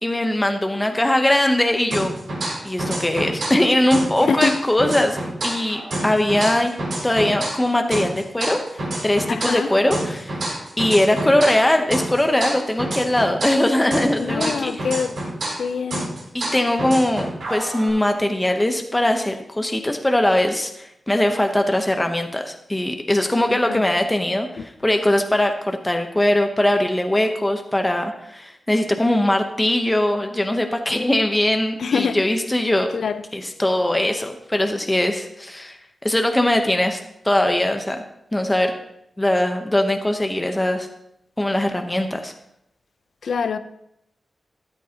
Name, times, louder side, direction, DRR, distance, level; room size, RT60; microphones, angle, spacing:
voice 1, 0.0-2.2 2.6-6.7 7.0-10.4 10.8-14.7 16.3-32.9 33.3-35.8 36.0-37.0 37.2-38.0 38.3-38.7 39.2-40.9 41.4-42.3, left 1 dB, 15° left, 5 dB, 0.8 m, -21 dB
sound 1, 1.9-3.6 3.9-7.6 7.9-11.7 11.9-15.6 15.9-17.9, right 1 dB, 85° right, 4.5 m, -28 dB
voice 2, 4.2-4.5 9.3-9.7 14.1-15.1 15.6-16.1 23.5-23.8 24.6-24.7 31.8-32.2 32.9-33.2 43.2-43.6, left 5 dB, 85° left, 12 dB, 0.5 m, -24 dB
13.0 x 9.0 x 2.8 m, 0.79 s
wide cardioid pair, 105°, 0 cm